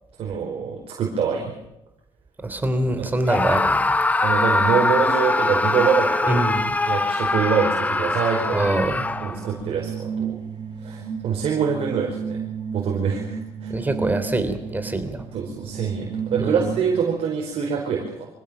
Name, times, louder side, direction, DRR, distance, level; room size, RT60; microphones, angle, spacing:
voice 1, 0.2-1.5 3.0-3.1 4.2-6.4 6.9-8.6 9.2-10.4 10.8-12.4 12.7-13.7 15.3-18.3, right 6 dB, 60° right, 0 dB, 4.8 m, -25 dB
voice 2, 2.4-3.8 6.3-6.7 8.5-9.1 13.7-15.2 16.4-16.6, right 2 dB, 15° right, 9 dB, 3.3 m, -24 dB
Screaming, 3.3-9.5, left 2 dB, 15° left, 0.9 m, -22 dB
sound 1, 8.5-17.1, right 6 dB, 40° right, 6.6 m, -33 dB
25.5 x 16.5 x 7.2 m, 0.89 s
cardioid pair, 120°, 11 cm